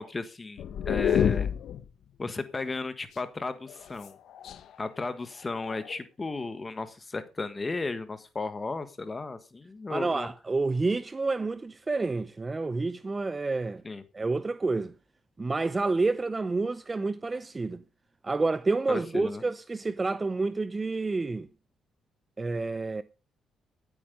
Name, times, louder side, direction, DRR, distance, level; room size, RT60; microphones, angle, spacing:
voice 1, 0.0-1.5 2.2-4.1 4.8-10.3 13.8-14.0 18.9-19.4, left 3 dB, 25° left, 1.5 m, -34 dB
sound 1, 0.6-1.8 3.7-4.8 5.5-6.0, left 9 dB, 70° left, 1.1 m, -28 dB
voice 2, 9.9-13.8 14.1-14.9 15.4-17.8 18.2-21.5 22.4-23.0, right 3 dB, 25° right, 0.6 m, -29 dB
15.0 x 8.7 x 5.2 m
cardioid pair, 90°, 0 cm